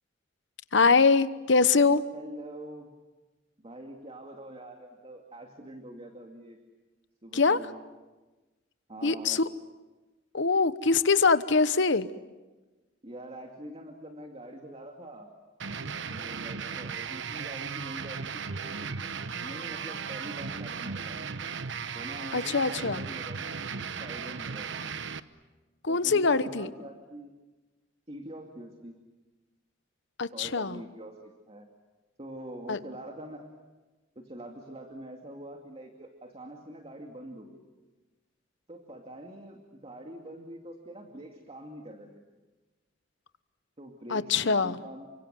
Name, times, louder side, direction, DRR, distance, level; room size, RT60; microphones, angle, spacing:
voice 1, 0.7-2.0 7.3-7.6 9.0-9.4 10.3-12.1 22.3-23.0 25.8-26.7 30.2-30.8 32.7-32.8 44.1-44.8, left 4 dB, 65° left, 13 dB, 1.1 m, -23 dB
voice 2, 2.1-2.9 3.6-6.6 7.2-7.8 8.9-9.4 13.0-15.3 16.1-19.0 19.4-21.3 21.9-24.9 25.9-27.4 28.1-29.0 30.3-31.7 32.2-33.5 34.2-37.6 38.7-42.2 43.8-45.1, right 1 dB, 30° right, 3 dB, 2.4 m, -44 dB
sound 1, 15.6-25.2, right 5 dB, 70° right, 1.0 m, -36 dB
29.5 x 25.0 x 7.7 m, 1.2 s
head